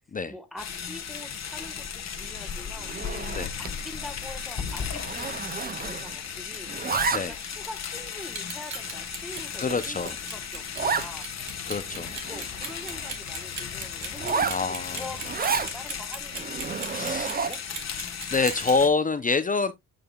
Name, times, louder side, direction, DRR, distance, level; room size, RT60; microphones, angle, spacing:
voice 1, 0.3-6.7 7.1-11.3 12.3-17.6, left 1 dB, ahead, 1.2 m, -44 dB
sound 1, 0.6-18.9, left 7 dB, 50° left, 1.4 m, -36 dB
Zipper (clothing), 2.8-3.8 4.1-4.3 4.6-6.3 6.5-7.6 8.2-8.3 8.9-9.0 9.4-9.5 9.7-9.8 10.0-10.2 10.7-11.1 11.6-11.7 11.9-13.2 14.1-15.7 16.3-17.7, right 5 dB, 25° right, 0.5 m, -31 dB
Clock, 8.3-18.7, right 5 dB, 55° right, 2.2 m, -37 dB
voice 2, 9.6-10.1 11.7-12.1 14.5-15.0 16.9-17.3 18.3-19.7, left 4 dB, 25° left, 0.5 m, -26 dB
9.0 x 4.9 x 2.3 m
cardioid pair, 105°, 34 cm